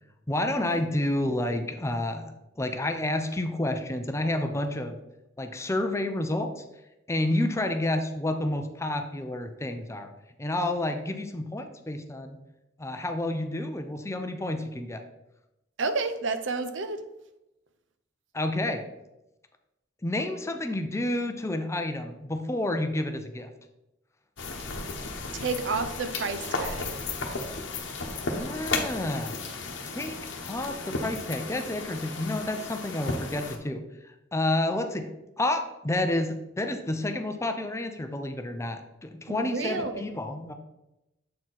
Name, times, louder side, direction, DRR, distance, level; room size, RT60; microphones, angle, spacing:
voice 1, 0.3-2.3 2.6-5.0 5.4-6.6 7.1-10.1 10.4-12.4 12.8-15.0 18.3-18.8 20.0-23.5 28.3-29.3 29.9-30.2 30.5-35.1 35.4-40.5, left 1 dB, 15° left, 6 dB, 0.5 m, -30 dB
voice 2, 15.8-17.0 25.3-27.0 39.3-40.1, right 4 dB, 70° right, 9 dB, 0.6 m, -30 dB
sound 1, 24.4-33.6, left 3 dB, 70° left, 1.0 m, -34 dB
7.5 x 4.4 x 4.0 m, 0.92 s
head